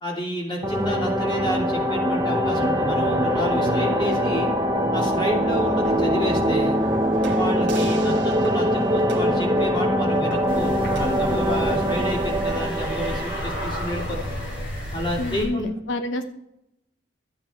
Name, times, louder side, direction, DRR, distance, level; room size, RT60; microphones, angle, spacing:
voice 1, 0.0-4.5 4.9-6.8 7.3-14.2 14.9-15.7, equal, 25° left, -2 dB, 3.0 m, -29 dB
sound 1, 0.6-14.2, equal, 20° right, 1.0 m, -23 dB
sound 2, 5.5-11.4, right 2 dB, 70° right, 1.5 m, -38 dB
sound 3, 10.5-15.4, equal, 75° left, 4.4 m, -32 dB
voice 2, 15.2-16.2, left 1 dB, 90° left, 7 dB, 0.9 m, -28 dB
13.0 x 8.8 x 4.5 m, 0.79 s
head